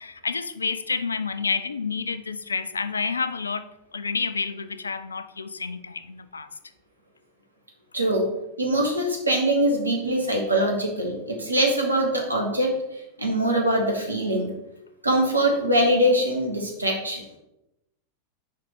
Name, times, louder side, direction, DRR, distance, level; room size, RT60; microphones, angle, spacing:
voice 1, 0.0-6.5, left 5 dB, 75° left, 0.4 m, -29 dB
voice 2, 7.9-8.3 8.6-12.7 13.2-14.5 15.0-17.2, right 1 dB, 80° right, 1.5 m, -23 dB
6.4 x 5.0 x 3.7 m
figure-of-eight pair, 90°, 0 cm